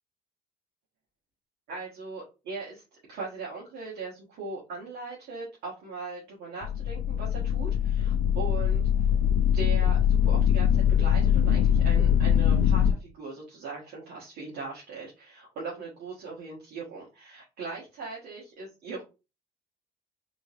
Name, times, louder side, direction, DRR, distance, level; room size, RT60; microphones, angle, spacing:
voice 1, 1.7-2.8 3.1-8.9 9.5-19.0, right 4 dB, 70° right, -5 dB, 1.4 m, -39 dB
sound 1, 6.6-12.9, left 9 dB, 55° left, 0.4 m, -23 dB
3.7 x 3.0 x 2.4 m, 0.28 s
cardioid pair, 160°, 17 cm